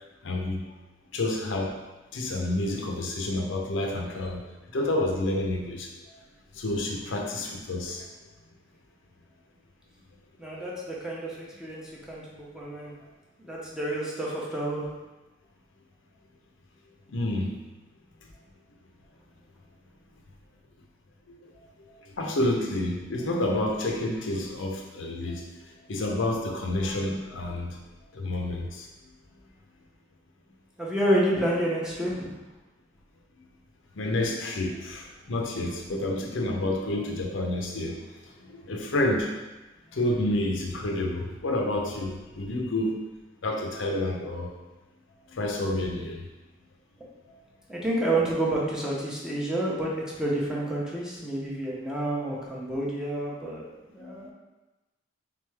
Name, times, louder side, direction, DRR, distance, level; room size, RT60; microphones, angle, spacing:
voice 1, 0.2-0.7 1.1-1.8 2.1-4.4 4.7-5.9 6.5-8.1 17.1-17.5 21.4-27.8 28.1-28.9 34.0-38.0 38.4-39.3 39.9-43.0 43.4-44.5 45.3-46.3 47.3-47.4 54.0-54.3, left 1 dB, 80° left, 1 dB, 0.6 m, -29 dB
voice 2, 10.4-12.9 13.4-14.9 30.8-32.3 47.7-53.6 53.9-54.3, right 1 dB, 5° right, -5 dB, 0.7 m, -29 dB
3.6 x 3.4 x 3.3 m, 1.1 s
head